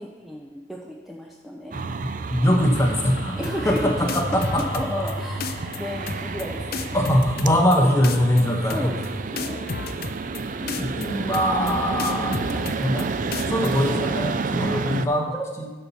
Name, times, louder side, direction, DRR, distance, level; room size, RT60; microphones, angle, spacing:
voice 1, 0.0-1.8 3.3-3.9 4.5-7.0 7.8-7.9 8.7-9.0 9.3-9.7 12.1-12.5 15.3-15.4, equal, ahead, -2 dB, 0.7 m, -33 dB
voice 2, 1.7-3.3 3.6-5.0 6.9-8.9 10.6-13.1 13.4-15.7, equal, 15° left, 1 dB, 1.3 m, -23 dB
sound 1, 1.7-15.1, right 4 dB, 45° right, 0.4 m, -30 dB
sound 2, 2.7-9.2, equal, 75° left, 1.0 m, -36 dB
sound 3, 3.4-3.8 4.1-5.1 5.4-5.8 6.1-6.4 6.7-7.8 8.0-8.4 8.7-9.1 9.4-10.4 10.7-11.1 11.3-11.7 12.0-13.0 13.3-13.7, left 5 dB, 55° left, 0.6 m, -32 dB
11.5 x 4.4 x 6.9 m, 1.3 s
head